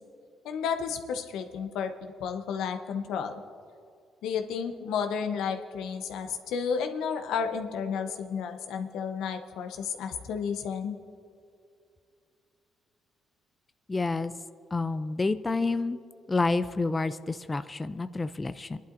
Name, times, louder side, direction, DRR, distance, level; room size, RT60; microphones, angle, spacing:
voice 1, 0.4-3.3 4.2-11.0, left 6 dB, 85° left, 6 dB, 0.8 m, -32 dB
voice 2, 13.9-14.3 14.7-16.0 16.3-18.8, left 3 dB, 25° left, 12 dB, 0.4 m, -29 dB
28.5 x 11.0 x 2.6 m, 2.4 s
cardioid pair, 90°, 0 cm